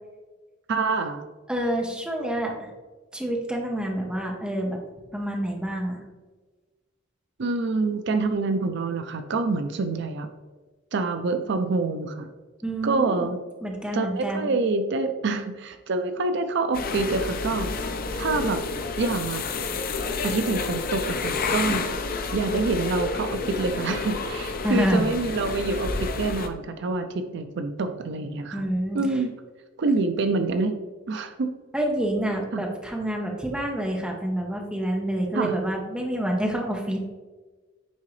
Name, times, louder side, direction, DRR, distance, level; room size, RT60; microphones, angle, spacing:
voice 1, 0.7-1.2 7.4-10.3 10.9-12.3 12.8-13.4 13.9-17.9 18.2-18.6 19.0-19.4 20.2-21.9 22.3-28.6 28.9-29.3 29.8-30.8 31.1-31.5 32.5-32.6 35.3-35.6, right 3 dB, 60° right, 8 dB, 0.5 m, -26 dB
voice 2, 1.5-2.7 3.1-4.8 5.1-6.0 12.6-13.3 13.6-14.5 24.6-25.1 28.5-29.0 31.7-37.0, right 1 dB, 5° right, 0 dB, 0.9 m, -27 dB
sound 1, 16.7-26.5, left 4 dB, 50° left, 0.6 m, -29 dB
9.5 x 3.7 x 3.2 m, 1.3 s
head